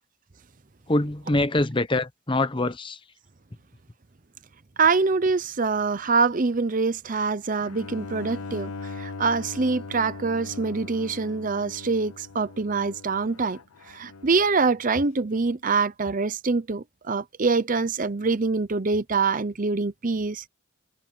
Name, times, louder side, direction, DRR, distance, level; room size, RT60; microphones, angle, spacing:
voice 1, 0.9-3.0, left 2 dB, 25° left, 0.9 m, -24 dB
voice 2, 4.8-13.6 13.9-20.5, right 4 dB, 40° right, 0.7 m, -25 dB
Bowed string instrument, 7.6-14.6, left 3 dB, 85° left, 0.8 m, -40 dB
head